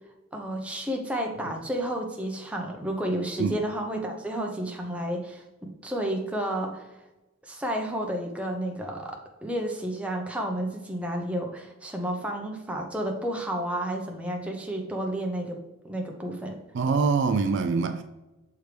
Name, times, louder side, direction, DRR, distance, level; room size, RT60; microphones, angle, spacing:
voice 1, 0.3-6.9 7.5-15.6 15.8-16.6, right 1 dB, 5° right, 0.8 m, -31 dB
voice 2, 16.7-18.0, right 4 dB, 55° right, 0.3 m, -24 dB
6.6 x 4.6 x 3.3 m
head